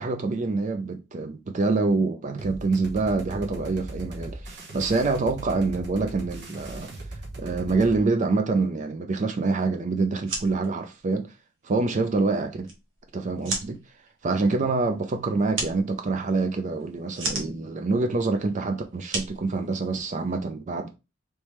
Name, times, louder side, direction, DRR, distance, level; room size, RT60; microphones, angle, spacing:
voice 1, 0.0-6.9 7.4-11.3 11.6-12.7 13.1-13.8 14.2-21.0, right 3 dB, 40° right, 0.4 m, -26 dB
sound 1, 2.4-8.0, right 2 dB, 60° right, 1.0 m, -38 dB
sound 2, 10.1-20.3, right 3 dB, 85° right, 1.1 m, -37 dB
3.3 x 3.2 x 3.0 m
head